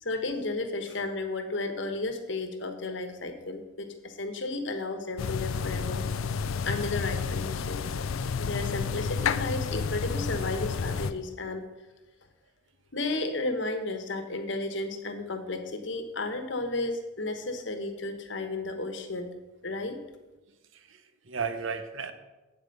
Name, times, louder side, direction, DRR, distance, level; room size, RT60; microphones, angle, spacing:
voice 1, 0.0-7.8 8.4-11.6 12.9-19.3 19.6-20.0, left 2 dB, 65° left, 7 dB, 1.2 m, -33 dB
sound 1, 5.2-11.1, left 5 dB, 85° left, 0.5 m, -30 dB
voice 2, 20.7-22.1, right 5 dB, 75° right, 10 dB, 0.9 m, -35 dB
8.7 x 7.8 x 5.4 m, 1.1 s
head